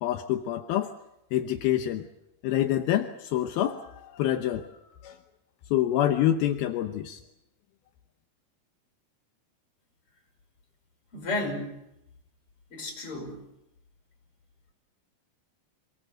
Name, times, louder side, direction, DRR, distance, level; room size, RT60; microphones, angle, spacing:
voice 1, 0.0-0.9 1.3-2.1 2.4-4.7 5.0-5.2 5.7-7.2, left 12 dB, 80° left, 6 dB, 2.8 m, -26 dB
voice 2, 11.1-11.8 12.7-13.4, left 2 dB, 35° left, 2 dB, 6.5 m, -33 dB
27.0 x 19.5 x 7.8 m, 0.86 s
omnidirectional pair, 4.4 m